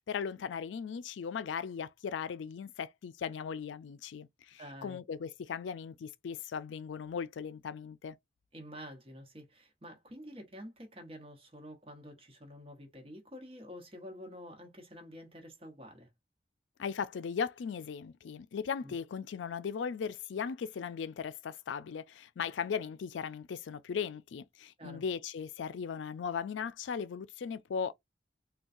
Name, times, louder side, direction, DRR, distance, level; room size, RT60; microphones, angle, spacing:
voice 1, 0.1-8.2 16.8-27.9, left 6 dB, 90° left, 0.4 m, -38 dB
voice 2, 4.6-5.0 8.5-16.1 18.8-18.9 24.8-25.0, equal, 30° right, 1.1 m, -48 dB
3.7 x 2.3 x 2.6 m
head